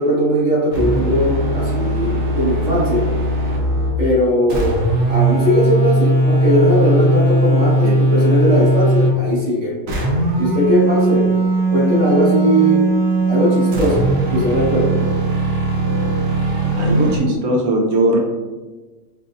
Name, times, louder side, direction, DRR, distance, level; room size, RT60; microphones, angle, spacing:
voice 1, 0.0-3.1 4.0-4.7 5.1-9.7 10.4-11.3 11.7-12.8 13.3-15.0, equal, 35° right, -7 dB, 1.5 m, -18 dB
sound 1, 0.7-4.0 4.5-9.2 9.9-17.2, right 2 dB, 70° right, 1.2 m, -18 dB
voice 2, 16.8-18.2, right 1 dB, 90° right, 0 dB, 1.2 m, -19 dB
4.2 x 3.5 x 2.6 m, 1.3 s
omnidirectional pair, 1.5 m